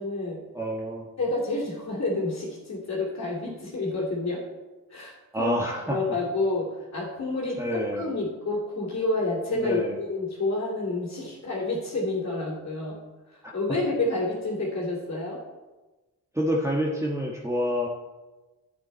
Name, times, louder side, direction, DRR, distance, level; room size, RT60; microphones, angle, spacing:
voice 1, 0.0-0.4 1.2-4.4 4.9-5.6 5.9-13.0 13.3-15.4, left 2 dB, 50° left, -4 dB, 2.6 m, -29 dB
voice 2, 0.5-1.1 5.3-6.0 7.6-8.0 9.6-10.0 16.3-17.9, equal, 10° right, -3 dB, 1.3 m, -27 dB
11.0 x 8.4 x 4.3 m, 1.2 s
cardioid pair, 95°, 35 cm